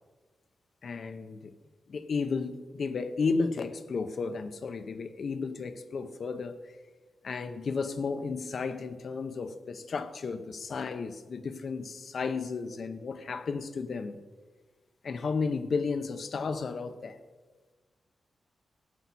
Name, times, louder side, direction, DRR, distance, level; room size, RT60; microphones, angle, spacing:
voice 1, 0.8-1.5 1.9-6.6 7.2-14.2 15.0-17.2, left 4 dB, 50° left, 0.7 m, -33 dB
14.0 x 9.3 x 4.2 m
wide cardioid pair, 170°, 0 cm